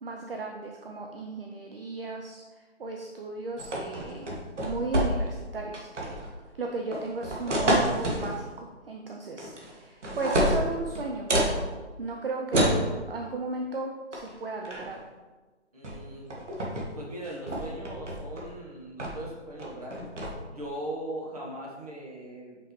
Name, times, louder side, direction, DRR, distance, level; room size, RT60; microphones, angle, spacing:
voice 1, 0.0-4.3 4.6-6.1 6.6-11.7 12.0-15.0, right 3 dB, 50° right, 2 dB, 0.6 m, -35 dB
sound 1, 3.6-5.4 5.7-6.3 6.9-8.3 9.4-9.7 10.0-11.6 12.5-12.8 14.1-14.3 14.6-15.0 15.8-16.0 16.3-16.9 17.2-18.5 19.0-19.3 19.6-20.3, right 1 dB, 75° right, 1.7 m, -28 dB
voice 2, 15.7-16.3 16.9-20.0 20.5-22.6, right 1 dB, 30° right, -3 dB, 1.2 m, -39 dB
5.8 x 5.4 x 3.1 m, 1.3 s
hypercardioid pair, 175°, 36 cm